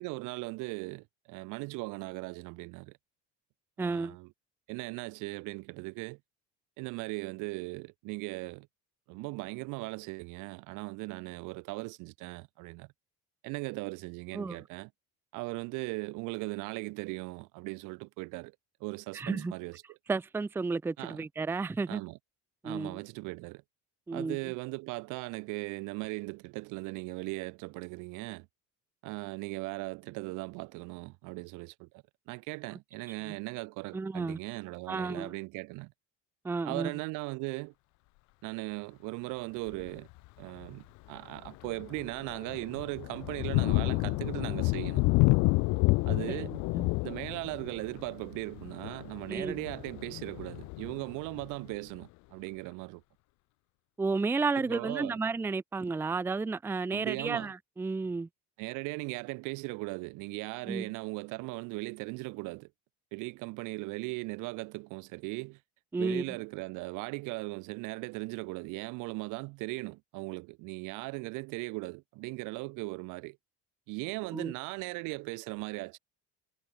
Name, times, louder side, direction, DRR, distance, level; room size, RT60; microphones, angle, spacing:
voice 1, 0.0-2.9 3.8-4.3 4.7-6.2 6.8-8.7 9.1-12.9 13.4-14.9 15.3-18.5 18.8-20.0 21.0-21.3 21.9-22.2 22.6-23.6 24.1-28.5 29.0-35.9 36.6-37.7 38.4-40.1 40.4-45.0 46.1-46.6 47.0-53.0 54.6-55.2 56.9-57.5 58.6-62.7 63.1-65.6 66.0-73.4 73.9-76.0, right 26 dB, 70° right, 1.5 m, -38 dB
voice 2, 3.8-4.2 14.3-14.6 19.1-19.5 20.1-22.0 22.6-23.0 24.1-24.4 33.9-34.4 34.9-35.3 36.4-36.9 46.3-46.9 49.3-49.6 54.0-58.3 60.7-60.9 65.9-66.2 74.3-74.5, right 4 dB, 5° right, 0.6 m, -32 dB
Thunder, 39.7-40.0 40.6-40.7 41.2-51.7, left 25 dB, 60° left, 0.6 m, -30 dB
cardioid pair, 180°, 32 cm